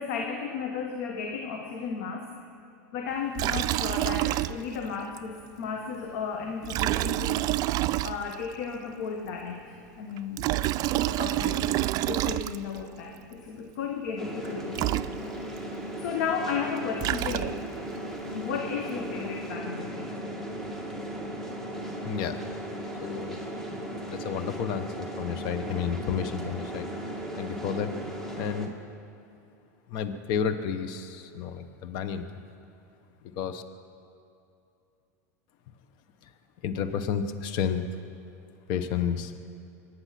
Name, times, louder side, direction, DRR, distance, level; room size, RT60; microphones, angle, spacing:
voice 1, 0.0-2.3 2.9-7.5 8.0-10.4 11.1-15.7 15.9-17.6 18.3-20.1 22.3-22.4, left 6 dB, 70° left, 2 dB, 1.4 m, -34 dB
Liquid, 3.3-4.9 5.2-5.3 6.6-8.5 10.2-12.8 14.4-14.5 14.7-15.6 16.7-17.8, right 15 dB, 40° right, 0.4 m, -28 dB
sound 1, 14.2-28.7, right 1 dB, 5° left, 2.1 m, -37 dB
voice 2, 22.0-22.4 23.0-23.4 24.1-26.9 27.4-27.9 28.4-28.7 29.9-32.3 33.3-33.6 36.6-37.9 38.7-39.4, left 7 dB, 50° left, 9 dB, 1.1 m, -31 dB
24.0 x 9.7 x 6.0 m, 2.7 s
supercardioid pair, 120°, 10 cm